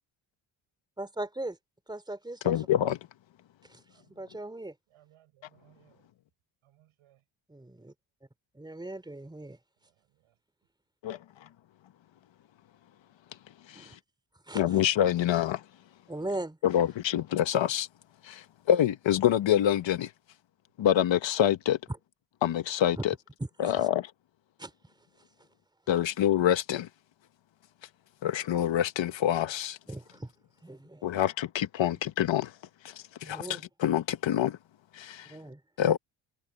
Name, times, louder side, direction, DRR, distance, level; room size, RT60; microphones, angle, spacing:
voice 1, 1.0-1.6 1.9-2.5 3.7-3.8 4.1-4.7 7.5-7.9 8.5-9.6 13.7-13.9 14.5-14.6 16.1-16.6 23.7-23.8 24.6-24.7 29.9-30.3 30.6-31.1 33.2-33.6 35.3-35.6, right 1 dB, 10° right, 3.4 m, -39 dB
voice 2, 2.4-3.0 11.0-11.5 13.7-14.0 14.5-15.6 16.6-17.9 18.2-20.1 20.8-21.8 22.4-23.1 23.6-24.1 25.9-26.9 28.2-29.8 31.0-32.6 32.8-34.6 34.9-35.4 35.8-36.0, left 11 dB, 65° left, 1.4 m, -26 dB
voice 3, 3.9-4.2 4.9-6.1 6.6-7.2 9.8-10.4, right 13 dB, 85° right, 6.7 m, -64 dB
cardioid pair, 110°, 49 cm